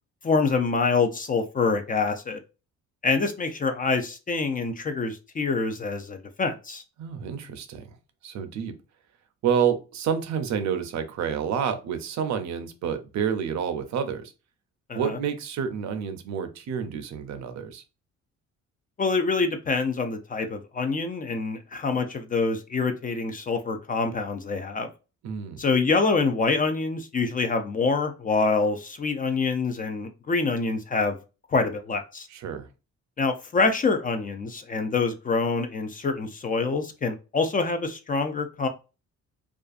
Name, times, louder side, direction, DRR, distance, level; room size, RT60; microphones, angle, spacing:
voice 1, 0.2-2.4 3.0-6.8 14.9-15.2 19.0-24.9 25.6-31.2 31.5-32.3 33.2-38.7, left 4 dB, 30° left, 7 dB, 0.4 m, -26 dB
voice 2, 7.0-7.9 8.2-8.7 9.4-14.3 14.9-17.8 25.2-25.6 32.3-32.7, right 7 dB, 65° right, 8 dB, 0.6 m, -29 dB
2.4 x 2.3 x 2.4 m, 0.31 s
cardioid pair, 90°, 30 cm